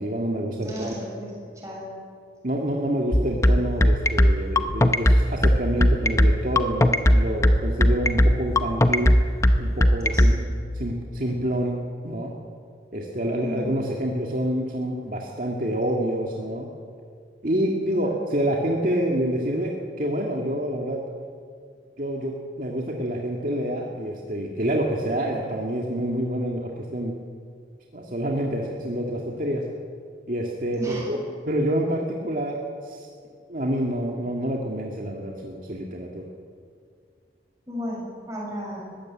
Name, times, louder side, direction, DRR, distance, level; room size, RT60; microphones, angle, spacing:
voice 1, 0.0-0.9 2.4-9.1 9.6-10.3 10.7-11.8 12.0-12.3 12.9-16.7 17.4-21.0 22.0-27.1 27.9-29.6 30.3-31.2 31.5-33.1 33.5-36.3, right 1 dB, 50° right, -1 dB, 2.0 m, -27 dB
voice 2, 0.6-1.9 10.1-10.5 13.3-13.8 17.9-18.2 30.8-31.2 37.7-38.8, equal, 15° right, -4 dB, 7.4 m, -35 dB
sound 1, 3.1-10.3, equal, 15° left, 0.8 m, -16 dB
21.0 x 15.5 x 8.7 m, 2.2 s
head